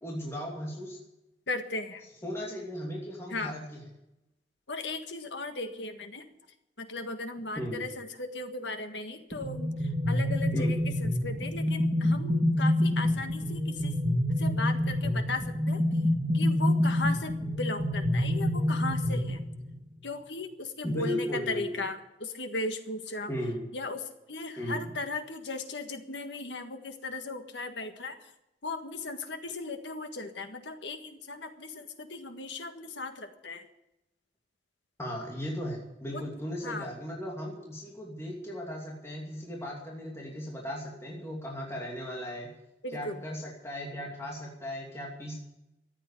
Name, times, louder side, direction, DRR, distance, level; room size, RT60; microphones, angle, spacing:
voice 1, 0.0-1.0 2.2-3.8 7.6-7.8 10.5-10.7 20.8-21.8 23.3-23.6 24.6-24.8 35.0-42.5 42.9-45.4, equal, 15° left, -3 dB, 2.7 m, -36 dB
voice 2, 1.5-2.0 3.3-3.6 4.7-6.3 6.8-14.0 14.4-16.1 16.3-19.4 20.0-23.3 23.7-28.3 28.6-33.7 36.1-36.2 36.6-36.9 42.8-43.2, left 3 dB, 80° left, 6 dB, 1.7 m, -37 dB
sound 1, 9.3-19.8, left 1 dB, 30° right, 2.2 m, -27 dB
14.0 x 8.8 x 9.9 m, 0.89 s
head